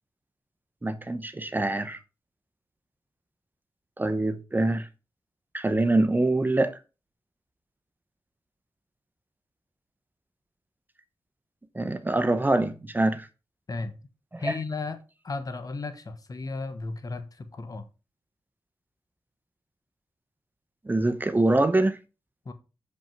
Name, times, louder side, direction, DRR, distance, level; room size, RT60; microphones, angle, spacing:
voice 1, 0.8-2.0 4.0-4.9 5.5-6.7 11.7-13.3 14.3-14.6 20.9-22.0, right 2 dB, 25° right, 0.9 m, -24 dB
voice 2, 14.4-15.0 15.2-17.9 22.4-22.5, left 3 dB, 50° left, 1.2 m, -34 dB
7.2 x 5.4 x 4.6 m
cardioid pair, 60°, 8 cm